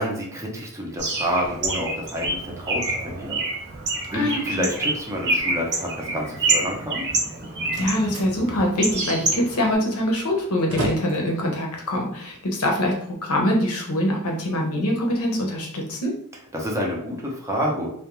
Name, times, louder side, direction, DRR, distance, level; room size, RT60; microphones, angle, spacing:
voice 1, 0.0-3.4 4.1-7.0 16.5-17.9, equal, 15° right, -2 dB, 0.5 m, -28 dB
Bird, 1.0-9.7, right 2 dB, 50° right, 0.7 m, -27 dB
voice 2, 4.1-4.7 7.8-12.9 13.2-16.1, left 1 dB, 75° left, 0 dB, 0.7 m, -24 dB
Slam, 7.3-13.1, right 1 dB, 75° right, 0.9 m, -36 dB
2.3 x 2.2 x 2.9 m, 0.66 s
head